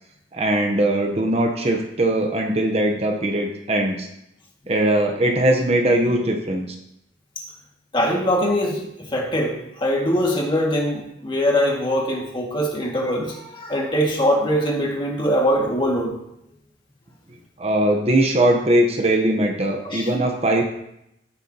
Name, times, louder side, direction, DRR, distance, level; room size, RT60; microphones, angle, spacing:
voice 1, 0.3-4.1 4.7-6.7 17.6-20.6, right 1 dB, 35° right, 3 dB, 0.9 m, -20 dB
voice 2, 7.9-16.1 19.8-20.1, equal, 25° left, -2 dB, 2.0 m, -22 dB
15.0 x 7.7 x 2.9 m, 0.81 s
head